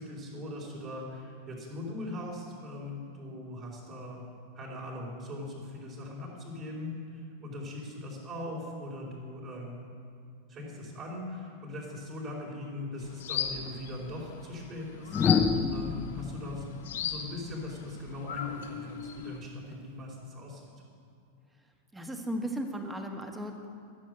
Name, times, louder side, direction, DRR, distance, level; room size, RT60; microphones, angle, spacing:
voice 1, 0.0-4.2 4.5-9.8 10.5-15.2 15.7-20.6, left 2 dB, 35° right, -5 dB, 4.2 m, -40 dB
sound 1, 13.0-19.4, left 8 dB, 60° left, 1.3 m, -37 dB
sound 2, 13.5-13.7 15.1-18.2 19.7-20.0, left 5 dB, 20° left, 0.7 m, -29 dB
voice 2, 21.9-23.7, equal, 10° right, 4 dB, 1.5 m, -36 dB
14.5 x 7.6 x 8.0 m, 2.4 s
figure-of-eight pair, 90°, 0 cm